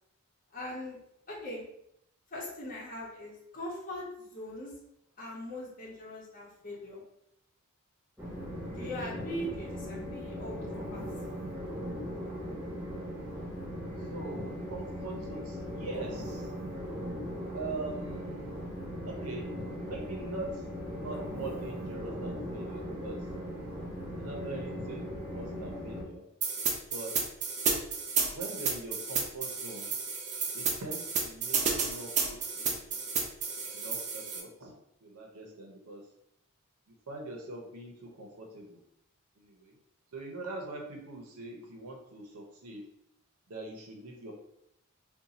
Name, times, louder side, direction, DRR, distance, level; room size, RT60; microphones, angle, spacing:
voice 1, 0.5-1.0 1.3-1.7 2.3-4.7 5.2-7.0 8.7-11.0, left 1 dB, 40° left, -4 dB, 0.9 m, -41 dB
Train, 8.2-26.0, equal, 10° right, 0.9 m, -39 dB
voice 2, 14.1-16.5 17.5-18.6 19.1-19.5 19.8-20.6 20.9-23.3 24.2-26.2 26.9-27.1 28.3-29.9 30.5-33.0 33.7-34.7 35.0-36.0 36.9-38.8 39.4-39.8 40.1-42.8 43.5-44.3, right 2 dB, 85° right, 0 dB, 0.7 m, -42 dB
sound 1, 26.4-34.4, right 5 dB, 30° right, 0.4 m, -31 dB
2.6 x 2.2 x 4.0 m, 0.77 s
head